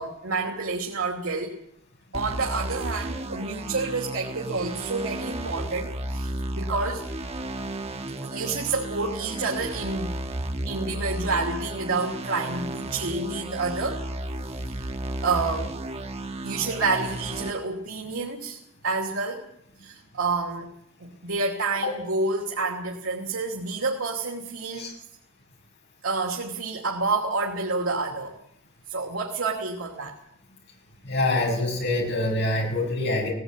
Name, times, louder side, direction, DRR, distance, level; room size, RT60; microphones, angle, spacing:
voice 1, 0.0-1.5 2.1-7.0 8.2-10.2 10.7-14.0 14.4-14.9 15.2-15.7 16.4-18.6 18.8-19.5 19.8-20.7 21.0-24.9 26.0-28.3 28.9-30.1, right 3 dB, 85° right, -1 dB, 2.8 m, -29 dB
sound 1, 2.1-17.5, right 1 dB, 30° right, 1.4 m, -33 dB
voice 2, 31.0-33.3, left 2 dB, 55° left, 0 dB, 6.4 m, -25 dB
17.5 x 17.0 x 9.2 m, 0.76 s
head